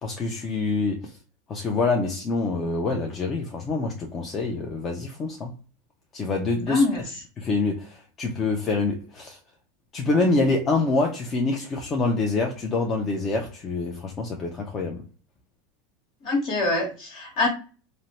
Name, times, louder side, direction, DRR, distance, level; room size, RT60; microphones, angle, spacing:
voice 1, 0.0-1.2 1.5-5.5 6.1-6.8 7.4-9.4 9.9-15.0, left 3 dB, 30° left, 0.5 m, -26 dB
voice 2, 6.7-7.0 16.2-17.5, left 2 dB, 55° left, 1.4 m, -24 dB
2.5 x 2.1 x 3.0 m
hypercardioid pair, 100°, 0 cm